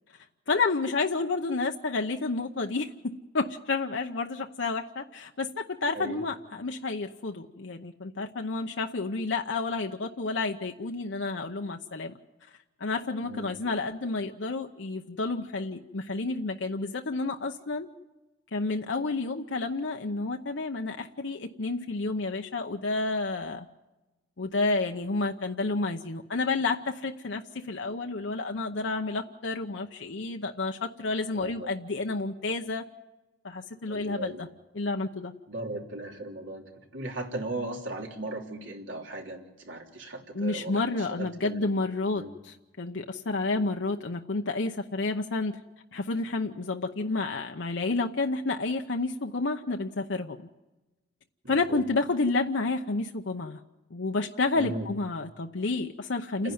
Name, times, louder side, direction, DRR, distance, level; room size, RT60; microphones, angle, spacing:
voice 1, 0.5-2.9 3.3-12.1 12.8-17.9 18.5-23.7 24.4-32.8 33.4-34.5 34.7-35.3 40.3-45.6 45.9-50.4 51.5-53.6 53.9-56.5, left 3 dB, 70° left, 4 dB, 0.8 m, -30 dB
voice 2, 31.3-31.7 33.9-34.4 35.5-36.6 36.9-40.8 41.1-41.6 42.1-42.3 51.4-51.8 54.6-54.9 56.4-56.5, right 2 dB, 75° right, 1 dB, 3.2 m, -37 dB
29.0 x 10.5 x 9.4 m, 1.1 s
head